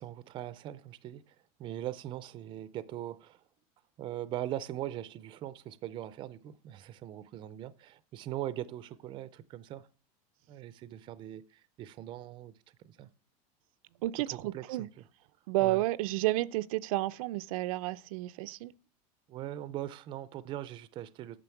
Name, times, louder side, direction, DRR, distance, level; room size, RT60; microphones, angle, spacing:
voice 1, 0.0-1.3 1.6-3.4 4.0-9.9 10.5-12.6 12.8-13.1 14.3-14.9 15.6-15.8 19.3-21.4, right 13 dB, 30° right, 0.4 m, -41 dB
voice 2, 14.0-14.9 15.5-18.7, right 17 dB, 80° right, 0.5 m, -31 dB
9.0 x 6.3 x 4.5 m
supercardioid pair, 165°, 18 cm